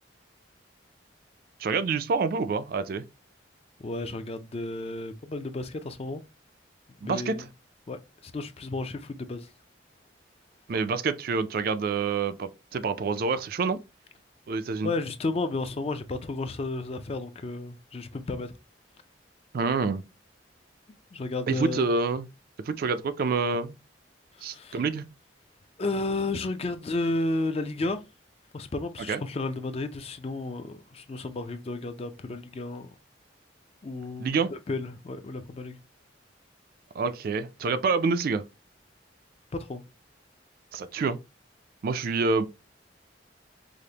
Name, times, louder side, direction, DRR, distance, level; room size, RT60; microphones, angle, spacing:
voice 1, 1.6-3.0 7.0-7.5 10.7-13.8 14.5-14.9 19.5-20.0 21.5-22.3 22.7-23.8 24.4-25.1 29.1-29.2 34.2-34.5 37.0-38.4 40.7-41.2 41.8-42.5, right 4 dB, 50° right, 0.3 m, -27 dB
voice 2, 3.8-6.2 7.0-7.5 7.9-9.5 14.8-18.5 21.1-21.9 24.4-24.8 25.8-28.0 28.5-32.9 33.8-35.8 39.6-39.8, left 2 dB, 35° left, 0.4 m, -32 dB
4.9 x 2.0 x 2.8 m
head